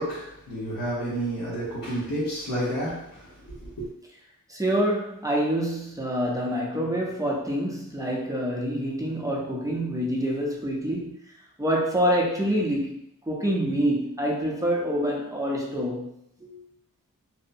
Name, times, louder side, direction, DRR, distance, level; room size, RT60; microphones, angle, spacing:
voice 1, 0.0-3.9, right 1 dB, 85° left, 1.0 m, -30 dB
voice 2, 4.5-11.2 11.6-16.1 16.4-16.6, equal, 10° right, 0.5 m, -26 dB
2.7 x 2.0 x 2.6 m
wide cardioid pair, 85°, 35 cm